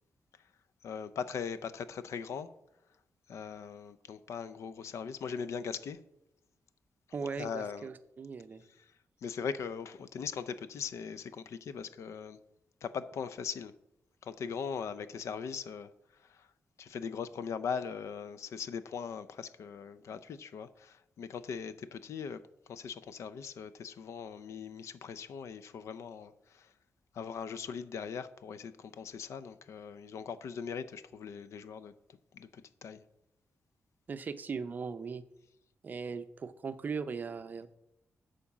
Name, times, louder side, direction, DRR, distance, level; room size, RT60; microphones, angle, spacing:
voice 1, 0.8-2.5 3.3-6.0 7.4-7.9 8.8-8.9 9.2-12.4 12.8-13.7 14.2-15.9 16.2-16.5 16.8-26.7 27.1-31.9 32.3-33.0, left 6 dB, 75° left, 0.5 m, -40 dB
voice 2, 7.1-8.6 34.1-35.2 35.8-37.7, right 5 dB, 35° right, 0.5 m, -38 dB
8.6 x 5.1 x 7.2 m
wide cardioid pair, 175°, 5 cm